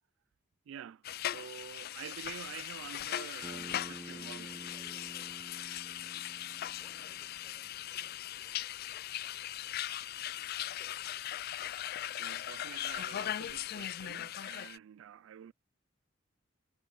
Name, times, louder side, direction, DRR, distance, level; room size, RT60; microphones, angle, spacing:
voice 1, 0.7-4.6 11.9-15.5, right 9 dB, 75° right, 0.3 m, -48 dB
sound 1, 1.0-14.8, left 12 dB, 50° left, 0.4 m, -39 dB
Bass guitar, 3.4-7.7, right 1 dB, 15° right, 0.9 m, -50 dB
voice 2, 4.0-9.8 10.3-11.2, left 1 dB, 10° left, 6.1 m, -68 dB
head